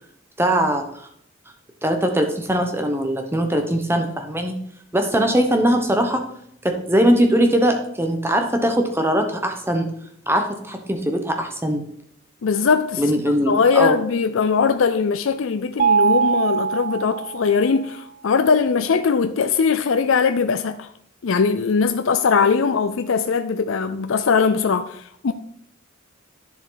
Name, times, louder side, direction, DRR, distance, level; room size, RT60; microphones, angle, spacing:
voice 1, 0.4-1.1 1.8-4.5 4.9-6.2 6.6-9.9 10.3-11.8 13.0-14.0, right 1 dB, 10° right, 1.1 m, -21 dB
voice 2, 12.4-13.0 13.5-20.9 21.2-25.3, left 5 dB, 70° left, 0.5 m, -20 dB
Mallet percussion, 15.8-17.8, right 6 dB, 40° right, 0.4 m, -21 dB
10.0 x 6.9 x 4.0 m
head